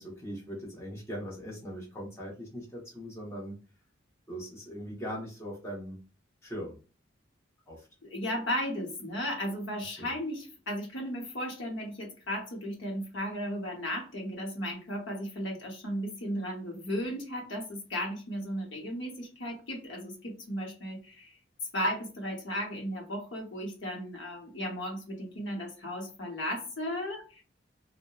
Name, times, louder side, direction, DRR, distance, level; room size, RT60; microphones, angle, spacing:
voice 1, 0.0-3.6 4.3-6.0 6.4-6.8 7.7-7.9 10.0-10.1, equal, 15° left, -4 dB, 0.8 m, -40 dB
voice 2, 8.0-21.3 21.7-27.4, equal, 65° left, 0 dB, 0.7 m, -35 dB
2.7 x 2.0 x 2.2 m, 0.34 s
head